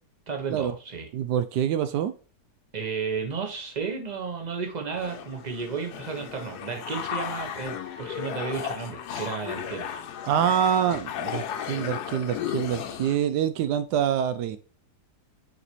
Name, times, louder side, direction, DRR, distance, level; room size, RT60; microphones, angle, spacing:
voice 1, 0.3-1.1 2.7-9.9, right 5 dB, 25° right, 4 dB, 1.4 m, -33 dB
voice 2, 1.1-2.1 10.2-14.6, right 9 dB, 80° right, 12 dB, 1.1 m, -26 dB
sound 1, 4.9-13.2, left 9 dB, 75° left, 1.3 m, -35 dB
6.5 x 4.9 x 3.0 m, 0.37 s
omnidirectional pair, 1.8 m